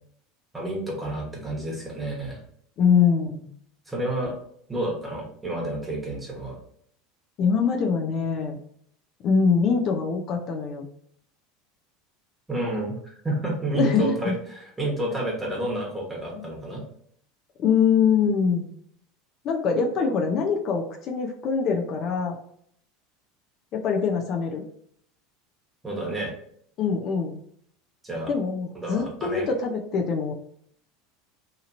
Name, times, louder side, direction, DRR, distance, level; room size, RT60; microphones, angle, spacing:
voice 1, 0.5-2.4 3.9-4.4 4.7-6.6 12.5-16.8 25.8-26.3 28.0-28.3 28.7-29.5, right 1 dB, 10° right, -2 dB, 1.1 m, -30 dB
voice 2, 2.8-3.5 7.4-8.6 9.2-10.9 13.7-14.3 16.4-16.5 17.6-18.7 19.4-22.4 23.7-24.6 26.8-27.4 28.3-30.3, left 6 dB, 45° left, 1 dB, 0.5 m, -23 dB
2.8 x 2.8 x 2.5 m, 0.66 s
supercardioid pair, 105°, 0 cm